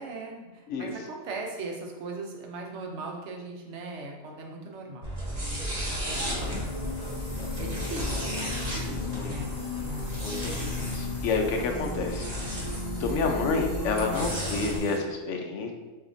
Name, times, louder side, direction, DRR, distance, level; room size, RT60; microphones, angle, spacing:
voice 1, 0.0-5.6 5.8-9.5 9.8-10.7, right 2 dB, 60° right, 1 dB, 1.0 m, -40 dB
sound 1, 5.0-14.8, equal, 35° right, 1.1 m, -34 dB
sound 2, 6.1-15.0, left 3 dB, 35° left, 0.9 m, -36 dB
voice 2, 8.8-9.5 10.2-12.3 13.0-15.7, left 4 dB, 70° left, 3 dB, 0.9 m, -29 dB
6.5 x 2.8 x 2.6 m, 1.2 s
omnidirectional pair, 1.4 m